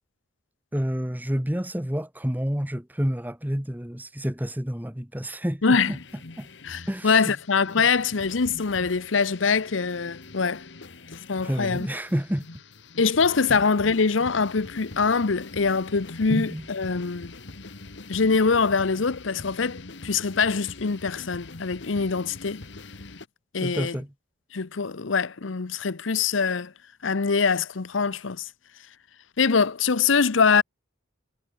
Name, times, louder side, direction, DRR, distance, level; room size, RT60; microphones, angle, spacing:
voice 1, 0.7-6.0 6.4-6.5 6.9-7.4 7.8-7.9 11.4-12.5 13.5-13.6 16.3-16.7 23.6-24.1, equal, 10° right, 1.5 m, -29 dB
voice 2, 5.6-5.9 6.6-10.6 11.3-11.9 13.0-17.3 18.1-22.6 23.5-24.0 24.5-26.7 27.0-28.5 29.4-30.6, left 5 dB, 80° left, 0.8 m, -23 dB
sound 1, 5.7-23.3, left 3 dB, 65° left, 1.4 m, -43 dB
head